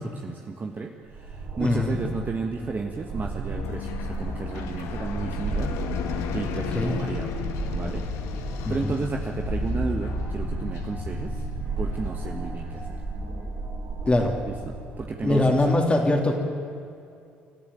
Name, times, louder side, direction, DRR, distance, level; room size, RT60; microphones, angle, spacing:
voice 1, 0.0-5.8 6.3-7.4 7.7-8.1 8.7-11.5 11.8-13.0 14.4-15.5, right 4 dB, 35° right, 3 dB, 1.6 m, -33 dB
sound 1, 1.1-15.6, right 3 dB, 60° right, 7.3 m, -33 dB
voice 2, 1.6-2.0 6.6-6.9 8.6-9.0 14.1-14.4 15.2-16.4, left 2 dB, 20° left, 0 dB, 3.1 m, -22 dB
sound 2, 3.5-12.9, left 8 dB, 65° left, 1.5 m, -35 dB
27.0 x 13.5 x 9.2 m, 2.5 s
figure-of-eight pair, 50°, 5 cm